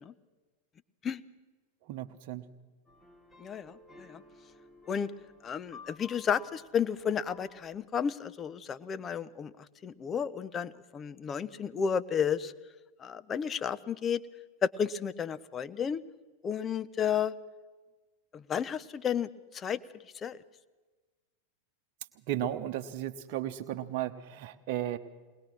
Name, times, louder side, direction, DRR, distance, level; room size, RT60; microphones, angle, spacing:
voice 1, 1.9-2.5 22.3-25.0, right 12 dB, 45° right, 7 dB, 1.1 m, -34 dB
sound 1, 2.9-7.9, left 3 dB, 10° left, 1.9 m, -54 dB
voice 2, 3.4-4.2 4.9-5.1 5.4-9.5 9.8-12.5 13.0-14.2 14.6-16.0 16.4-17.4 18.3-19.8 20.1-20.4, left 7 dB, 25° left, 15 dB, 0.7 m, -32 dB
21.5 x 20.0 x 6.2 m, 1.3 s
figure-of-eight pair, 90°, 0 cm